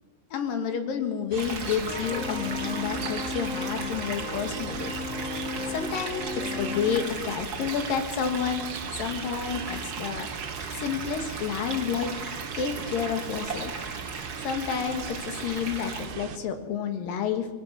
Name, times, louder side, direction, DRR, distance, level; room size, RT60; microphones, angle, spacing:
voice 1, 0.3-4.9 5.7-6.3 6.6-8.6 9.0-10.3 10.7-12.1 12.6-13.7 14.4-17.5, left 7 dB, 65° left, 6 dB, 3.4 m, -30 dB
sound 1, 1.3-16.4, right 8 dB, 80° right, 3.1 m, -38 dB
sound 2, 1.4-16.1, right 3 dB, 30° right, 2.1 m, -38 dB
sound 3, 1.8-7.1, left 3 dB, 35° left, 1.1 m, -35 dB
23.0 x 20.0 x 6.5 m, 1.4 s
omnidirectional pair, 4.6 m